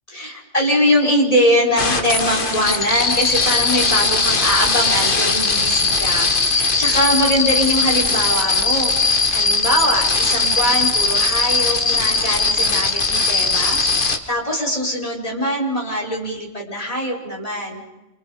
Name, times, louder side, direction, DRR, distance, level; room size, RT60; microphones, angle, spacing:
voice 1, 0.1-17.9, equal, 30° left, -1 dB, 5.0 m, -22 dB
sound 1, 1.8-14.2, left 3 dB, 45° left, 1.7 m, -19 dB
28.0 x 27.0 x 5.0 m, 1.0 s
omnidirectional pair, 1.2 m